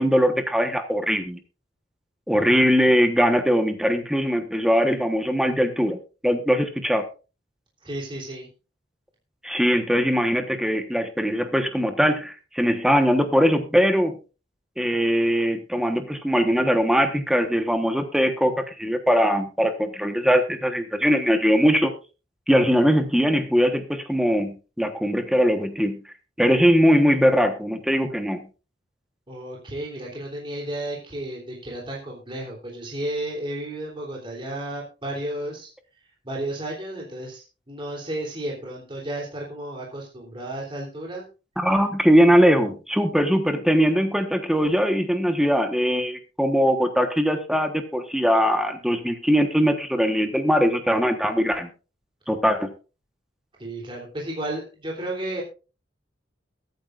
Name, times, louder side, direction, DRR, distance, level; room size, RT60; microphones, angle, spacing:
voice 1, 0.0-1.4 2.3-6.0 6.2-7.1 9.4-14.2 14.8-21.9 22.5-26.0 26.4-28.4 41.6-51.7 52.3-52.7, equal, 5° right, 6 dB, 1.2 m, -21 dB
voice 2, 7.8-8.5 29.3-35.7 36.2-41.3 53.6-55.4, right 1 dB, 30° right, -3 dB, 3.3 m, -33 dB
21.5 x 9.3 x 2.5 m, 0.33 s
head